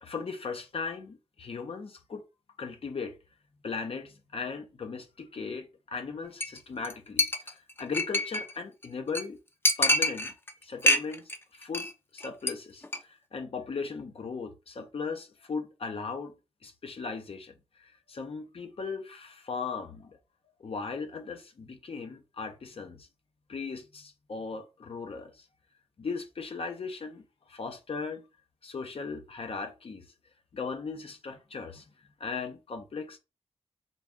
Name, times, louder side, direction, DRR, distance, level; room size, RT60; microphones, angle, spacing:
voice 1, 0.0-2.2 2.6-3.2 3.6-9.4 9.8-10.3 10.6-16.3 16.6-20.2 20.6-23.1 23.5-25.5 26.0-27.2 27.5-28.3 28.6-30.1 30.5-31.8 32.2-33.2, left 4 dB, 60° left, 0.7 m, -38 dB
Chink clink, 6.4-6.6 6.8-6.9 7.2-8.5 8.8-8.9 9.1-9.2 9.6-10.5 10.8-11.4 11.6-11.9 12.2-12.5 12.8-13.0, left 1 dB, 20° left, 0.6 m, -26 dB
3.8 x 2.3 x 3.6 m
cardioid pair, 65°, 11 cm